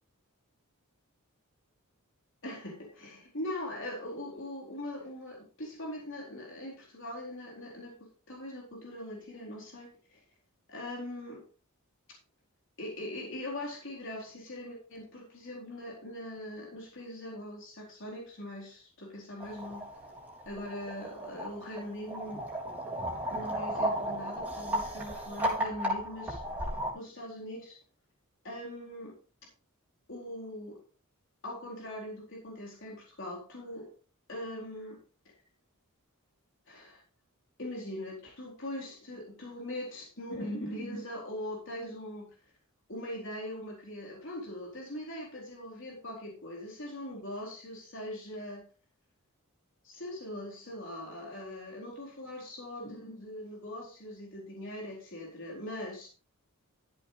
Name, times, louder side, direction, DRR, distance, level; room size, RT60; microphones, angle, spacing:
voice 1, 2.4-10.2 10.7-11.4 12.8-19.8 20.5-22.4 23.3-26.4 26.9-27.8 28.4-29.1 30.1-30.8 31.4-33.9 34.3-35.0 36.7-37.0 37.6-42.3 42.9-48.6 49.8-56.1, left 1 dB, 60° left, -3 dB, 4.1 m, -41 dB
sound 1, 19.4-26.9, right 1 dB, 5° right, 3.9 m, -35 dB
13.0 x 8.4 x 3.3 m, 0.36 s
head